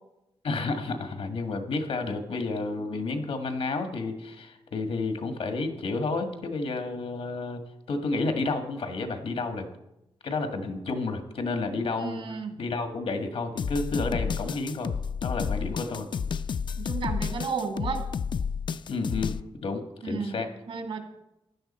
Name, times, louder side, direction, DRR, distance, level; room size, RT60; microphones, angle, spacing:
voice 1, 0.4-7.6 7.9-9.7 10.2-14.9 15.2-16.1 18.9-19.4 19.6-20.5, left 3 dB, 85° left, 6 dB, 1.7 m, -31 dB
voice 2, 12.0-12.5 16.8-18.0 20.0-21.0, right 5 dB, 70° right, 5 dB, 2.0 m, -33 dB
sound 1, 13.6-19.4, left 6 dB, 50° left, 0.4 m, -31 dB
15.5 x 11.0 x 4.3 m, 0.90 s
wide cardioid pair, 130°, 10 cm